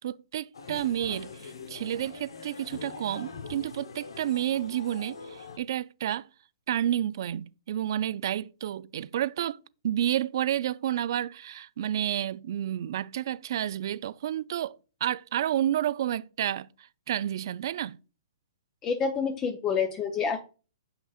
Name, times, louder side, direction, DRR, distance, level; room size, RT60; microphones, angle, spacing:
voice 1, 0.0-6.3 6.7-18.0, right 11 dB, 60° right, 0.3 m, -30 dB
sound 1, 0.5-5.6, left 5 dB, 85° left, 0.9 m, -43 dB
voice 2, 18.8-20.4, left 6 dB, 20° left, 0.6 m, -28 dB
6.9 x 5.8 x 2.4 m
hypercardioid pair, 140°, 3 cm